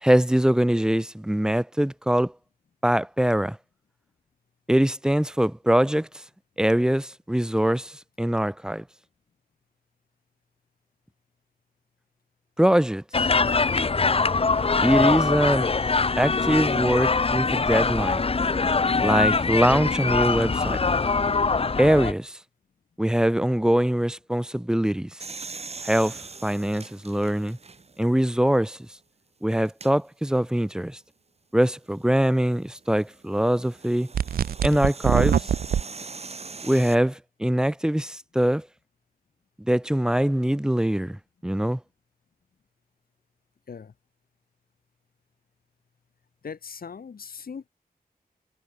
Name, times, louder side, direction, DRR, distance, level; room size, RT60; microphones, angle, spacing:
voice 1, 0.0-2.3 2.8-3.6 4.7-6.1 6.6-8.8 12.6-13.0 14.8-15.7 16.2-18.2 19.0-20.8 21.8-22.4 23.0-25.2 25.8-27.6 28.0-28.8 29.4-31.0 31.5-34.1 34.6-35.4 36.6-38.7 39.6-41.8, right 1 dB, 5° right, 1.2 m, -23 dB
sound 1, 13.1-22.1, left 4 dB, 40° left, 1.7 m, -23 dB
sound 2, 25.2-28.1 28.7-28.8 29.6-29.9 32.1-36.9, right 4 dB, 45° right, 6.5 m, -41 dB
sound 3, 34.1-35.8, right 9 dB, 75° right, 0.4 m, -23 dB
voice 2, 46.4-47.7, left 6 dB, 75° left, 5.8 m, -39 dB
wide cardioid pair, 145°, 15 cm